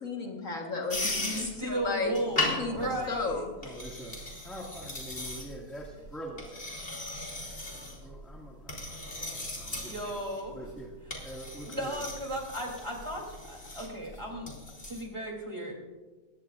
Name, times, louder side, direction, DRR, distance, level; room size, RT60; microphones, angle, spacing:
voice 1, 0.0-2.1 2.6-3.5, left 3 dB, 60° left, 1 dB, 1.8 m, -33 dB
sound 1, 0.9-15.0, left 2 dB, 35° left, 3.0 m, -38 dB
voice 2, 1.4-3.7 9.7-10.6 11.7-14.5 14.9-15.7, right 1 dB, 20° right, 0 dB, 3.1 m, -35 dB
voice 3, 2.7-3.1 3.6-6.8 7.9-10.2 10.5-12.1, right 1 dB, ahead, -3 dB, 1.8 m, -45 dB
20.0 x 16.5 x 2.5 m, 1.2 s
omnidirectional pair, 1.6 m